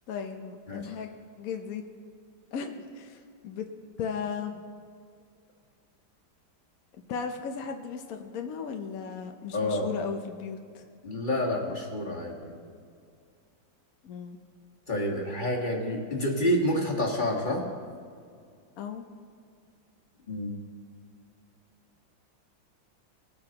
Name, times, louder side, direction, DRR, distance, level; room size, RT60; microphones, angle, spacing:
voice 1, 0.1-1.1 1.4-1.8 2.5-3.7 4.0-4.6 7.1-10.8 14.0-14.4 18.8-19.0, left 6 dB, 60° left, 4 dB, 0.9 m, -36 dB
voice 2, 9.5-9.9 11.0-12.6 14.9-17.6 20.3-20.6, left 1 dB, 25° left, -2 dB, 1.5 m, -28 dB
20.0 x 9.5 x 2.9 m, 2.3 s
omnidirectional pair, 2.2 m